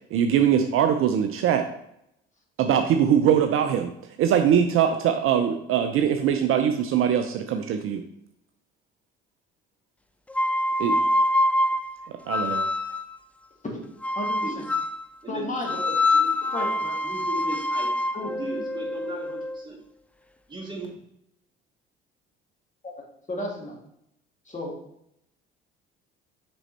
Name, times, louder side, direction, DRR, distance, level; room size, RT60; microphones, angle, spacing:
voice 1, 0.1-1.7 2.6-3.9 4.2-8.0 10.8-11.0 12.1-12.7, right 8 dB, 50° right, 6 dB, 0.6 m, -22 dB
sound 1, 10.3-13.1 14.0-15.0 15.6-19.6, left 1 dB, 5° left, 0.3 m, -25 dB
voice 2, 14.2-14.7 15.3-15.7 16.5-17.0 18.1-18.3 23.3-23.8 24.5-24.7, left 1 dB, 25° left, -1 dB, 2.1 m, -33 dB
voice 3, 15.2-16.7 17.0-19.8 20.5-20.9, right 2 dB, 15° right, -2 dB, 2.3 m, -37 dB
6.1 x 5.2 x 3.3 m, 0.76 s
hypercardioid pair, 55°, 29 cm